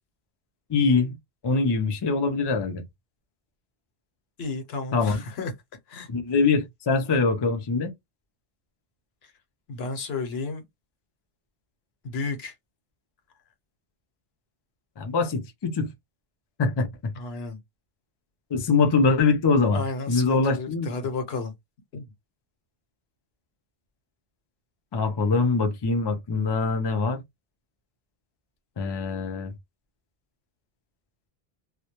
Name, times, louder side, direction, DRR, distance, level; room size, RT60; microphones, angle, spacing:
voice 1, 0.7-1.2 1.4-2.8 4.9-5.2 6.1-7.9 15.0-15.9 16.6-17.1 18.5-19.8 20.1-20.9 24.9-27.2 28.8-29.5, left 4 dB, 40° left, 0.4 m, -23 dB
voice 2, 4.4-5.5 5.9-6.1 9.2-9.3 9.7-10.6 12.0-12.5 17.1-17.6 19.7-21.5 21.9-22.0, left 3 dB, 80° left, 1.0 m, -32 dB
2.2 x 2.1 x 2.8 m
omnidirectional pair, 1.0 m